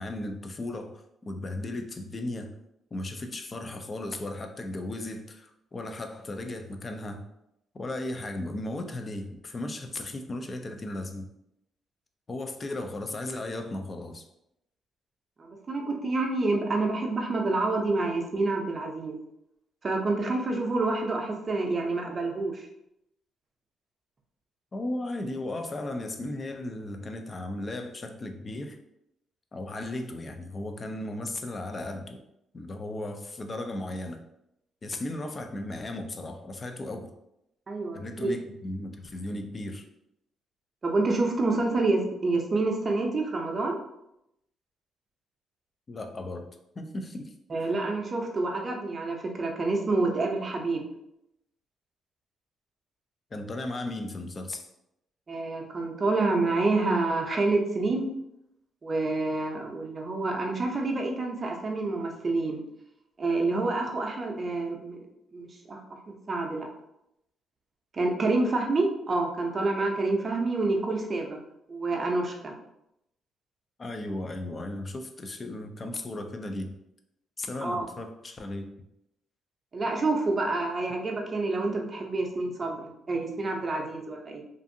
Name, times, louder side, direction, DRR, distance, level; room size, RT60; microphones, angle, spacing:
voice 1, 0.0-2.6 2.9-7.2 7.7-11.3 12.3-14.3 24.7-28.8 29.5-32.2 32.5-34.2 34.8-37.1 37.9-39.9 45.9-46.5 46.8-47.3 47.6-47.7 53.3-54.7 73.8-76.8 77.4-78.7, left 1 dB, 35° left, 5 dB, 0.4 m, -36 dB
voice 2, 15.4-19.2 19.8-22.7 37.7-38.3 40.8-43.8 47.5-50.9 55.3-58.1 58.8-62.6 63.2-65.0 65.3-66.7 67.9-71.4 71.7-72.5 77.6-77.9 79.7-84.4, right 3 dB, 35° right, 1 dB, 0.5 m, -28 dB
2.5 x 2.5 x 2.6 m, 0.83 s
cardioid pair, 90°, 0 cm